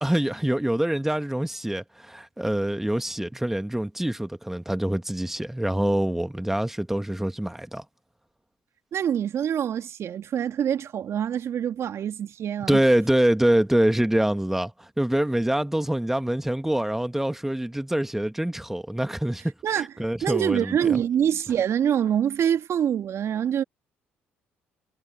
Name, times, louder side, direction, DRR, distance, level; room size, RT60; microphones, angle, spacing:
voice 1, 0.0-7.8 12.7-21.0, right 1 dB, 5° right, 2.1 m, -25 dB
voice 2, 8.9-12.8 19.6-19.9 20.2-23.6, right 9 dB, 55° right, 2.0 m, -25 dB
hypercardioid pair, 50°, 6 cm